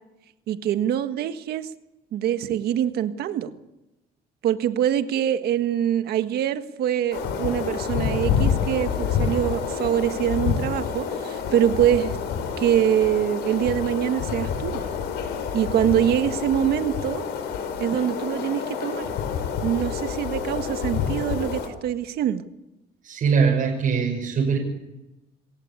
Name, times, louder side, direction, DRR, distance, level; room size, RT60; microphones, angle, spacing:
voice 1, 0.5-1.7 2.1-3.5 4.4-12.2 12.6-14.8 15.5-17.2 17.8-19.1 19.6-22.4, right 10 dB, 70° right, 9 dB, 1.6 m, -24 dB
sound 1, 7.1-21.7, left 7 dB, 85° left, 5.1 m, -28 dB
voice 2, 23.0-24.6, right 6 dB, 50° right, -2 dB, 6.1 m, -22 dB
27.0 x 15.0 x 8.6 m, 0.98 s
cardioid pair, 110°, 17 cm